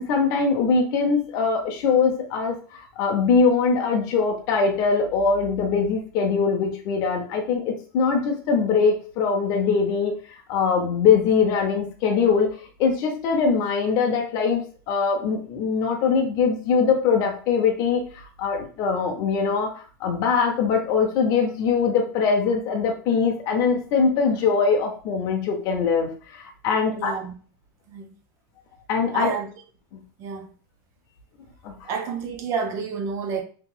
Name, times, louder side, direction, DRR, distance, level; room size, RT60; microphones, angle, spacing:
voice 1, 0.0-10.1 10.5-27.1 28.9-29.3 29.9-30.0 31.6-31.9, left 5 dB, 35° left, 0.5 m, -22 dB
voice 2, 26.9-27.3 27.9-28.1 29.1-29.5 30.2-30.5 31.9-33.4, right 6 dB, 25° right, 0.4 m, -29 dB
2.8 x 2.2 x 3.7 m
supercardioid pair, 175°, 11 cm